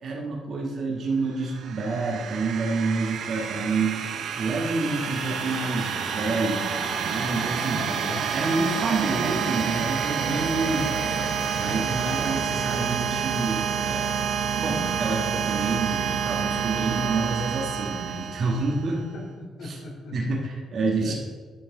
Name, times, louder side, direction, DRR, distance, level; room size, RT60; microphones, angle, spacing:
voice 1, 0.0-4.0 4.4-6.7 7.0-7.9 8.3-11.0 11.6-14.1 14.6-19.0 19.6-19.8 20.1-21.1, right 3 dB, 55° right, -2 dB, 1.4 m, -28 dB
sound 1, 1.4-19.0, right 7 dB, 75° right, 0.7 m, -28 dB
sound 2, 4.9-13.0, left 7 dB, 60° left, 0.4 m, -40 dB
voice 2, 7.7-8.3 11.7-11.8 19.1-20.1 21.0-21.1, left 3 dB, 85° left, -2 dB, 2.3 m, -39 dB
10.0 x 5.5 x 3.9 m, 1.4 s
cardioid pair, 90°, 0 cm